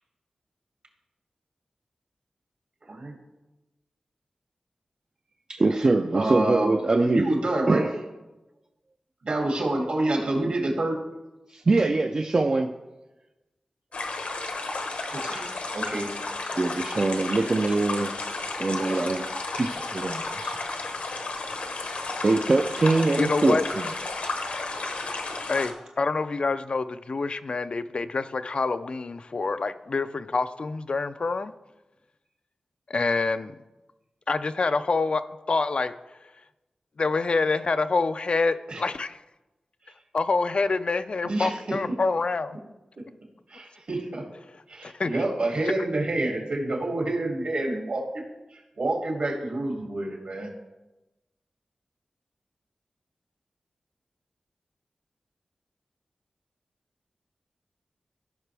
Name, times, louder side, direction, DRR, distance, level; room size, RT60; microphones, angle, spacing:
voice 1, 5.5-7.3 7.7-7.9 11.5-12.7 14.4-14.6 16.6-18.1 18.6-19.3 19.5-20.6 22.2-23.9, right 3 dB, 40° right, 4 dB, 0.5 m, -23 dB
voice 2, 6.1-7.8 9.2-11.0 15.1-15.4 15.7-16.1 18.7-19.2 38.7-38.8 41.2-41.8 43.5-44.3 44.7-48.2 48.5-50.5, right 2 dB, 65° right, 0 dB, 2.5 m, -28 dB
sound 1, 13.9-25.7, left 3 dB, 80° left, 1.1 m, -33 dB
voice 3, 23.2-23.7 25.5-31.5 32.9-33.6 34.3-35.2 35.5-35.9 37.0-39.2 40.1-42.6 44.8-45.1, left 3 dB, 55° left, 11 dB, 0.4 m, -26 dB
15.0 x 5.9 x 3.4 m, 1.0 s
wide cardioid pair, 95°, 2 cm